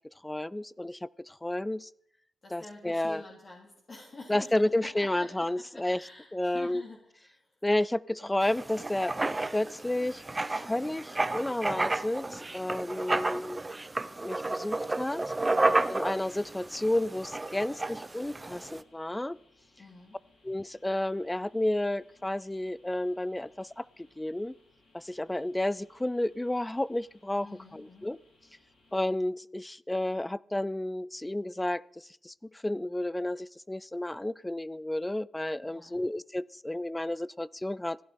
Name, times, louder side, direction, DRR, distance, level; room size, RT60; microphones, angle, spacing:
voice 1, 0.2-1.9 2.5-3.2 4.3-6.0 6.3-6.8 7.6-9.2 9.5-13.6 14.2-15.3 15.9-19.4 20.4-24.5 24.9-28.2 28.9-38.0, left 1 dB, 15° left, 22 dB, 0.4 m, -31 dB
voice 2, 2.4-7.0 7.3-7.5 15.5-15.9 19.8-20.2 27.4-28.1 35.6-36.0, left 2 dB, 45° left, -2 dB, 3.1 m, -48 dB
Writing, 8.4-18.8, right 2 dB, 25° right, 0.6 m, -32 dB
sound 1, 14.6-29.0, left 2 dB, 80° left, 6.6 m, -65 dB
15.5 x 11.0 x 4.3 m, 0.72 s
cardioid pair, 60°, 0 cm